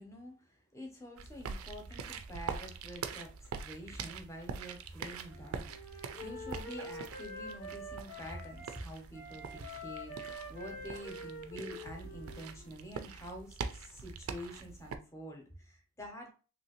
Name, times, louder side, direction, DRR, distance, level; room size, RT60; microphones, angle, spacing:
voice 1, 0.0-16.3, equal, 15° left, 2 dB, 0.7 m, -47 dB
sound 1, 1.2-15.0, right 5 dB, 85° right, 0.4 m, -44 dB
Wind instrument woodwind instrument, 5.3-8.8 9.1-12.9, left 1 dB, 80° left, 0.9 m, -46 dB
3.1 x 2.7 x 2.9 m, 0.35 s
head